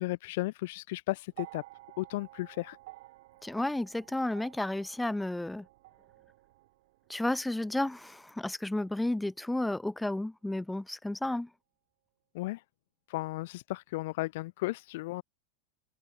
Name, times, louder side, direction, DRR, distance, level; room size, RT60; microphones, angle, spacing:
voice 1, 0.0-1.6 2.0-2.8 12.3-12.6 13.1-15.2, left 20 dB, 50° left, 0.4 m, -34 dB
sound 1, 1.3-9.7 10.7-10.8, right 18 dB, 50° right, 1.9 m, -54 dB
voice 2, 3.4-5.6 7.1-11.5, left 1 dB, 5° left, 0.6 m, -32 dB
open air
figure-of-eight pair, 90°, 0 cm